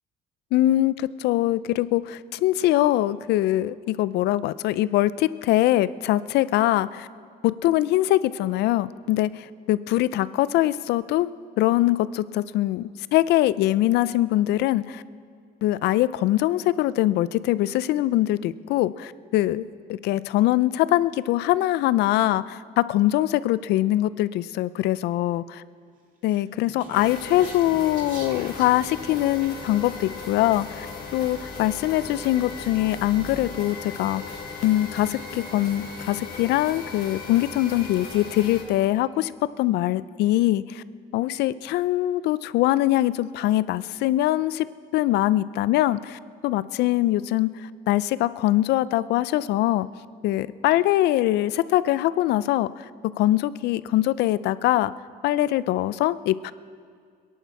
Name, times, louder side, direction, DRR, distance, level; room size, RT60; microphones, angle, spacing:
voice 1, 0.5-7.1 7.4-11.3 11.6-15.0 15.6-25.4 26.2-30.9 31.1-34.2 34.6-40.8 41.1-44.7 44.9-49.9 50.2-54.9 55.2-56.5, left 15 dB, 80° left, 17 dB, 0.5 m, -23 dB
Speech, 26.3-29.7, right 3 dB, 50° right, 2.0 m, -44 dB
sound 1, 26.9-38.6, left 4 dB, 60° left, 3.8 m, -37 dB
22.5 x 11.0 x 4.7 m, 2.1 s
cardioid pair, 110°, 17 cm